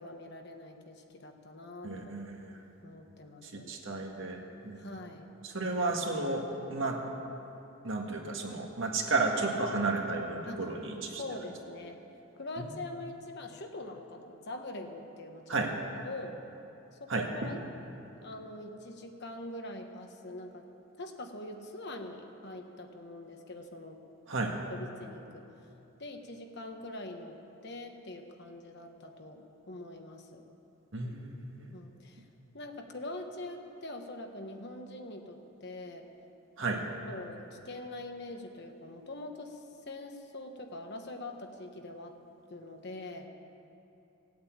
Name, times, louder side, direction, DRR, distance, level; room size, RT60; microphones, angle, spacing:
voice 1, 0.0-2.1 2.8-3.7 4.7-5.3 10.5-10.7 11.1-12.0 12.4-16.4 17.0-17.6 18.2-20.6 21.0-24.0 24.7-25.4 26.0-27.4 27.6-30.4 31.7-32.2 32.5-36.1 36.7-36.8 37.1-42.1 42.5-43.3, left 2 dB, 50° left, 4 dB, 1.2 m, -43 dB
voice 2, 1.8-2.6 3.4-4.4 4.6-4.8 5.4-6.4 6.7-7.0 7.8-11.2 15.5-15.7 17.1-17.5 24.3-24.6 30.9-31.3 31.6-31.7 36.6-36.8, right 3 dB, 60° right, 1 dB, 1.8 m, -32 dB
17.0 x 8.6 x 8.7 m, 2.9 s
head